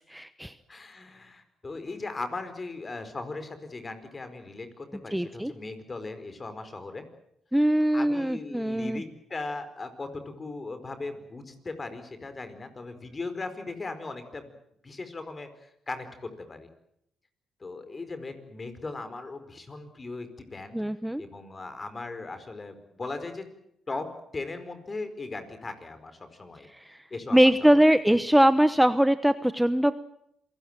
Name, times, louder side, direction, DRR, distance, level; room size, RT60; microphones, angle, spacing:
voice 1, 0.0-0.5 5.1-5.5 7.5-9.0 20.7-21.2 26.7-27.0 27.3-29.9, equal, 5° right, 13 dB, 1.0 m, -22 dB
voice 2, 0.7-7.0 7.9-14.5 14.8-16.7 17.6-20.8 21.2-23.4 23.9-24.1 24.3-26.7 27.1-27.8, left 3 dB, 35° left, 10 dB, 4.7 m, -38 dB
27.0 x 17.5 x 9.0 m, 0.75 s
supercardioid pair, 65°, 0 cm